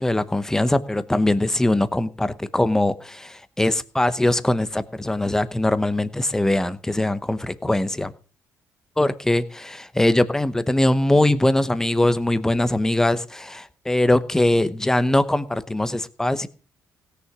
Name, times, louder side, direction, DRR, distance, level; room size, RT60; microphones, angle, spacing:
voice 1, 0.0-8.1 9.0-16.5, left 1 dB, 10° left, 0.9 m, -21 dB
17.0 x 6.6 x 6.2 m
cardioid pair, 125°, 6 cm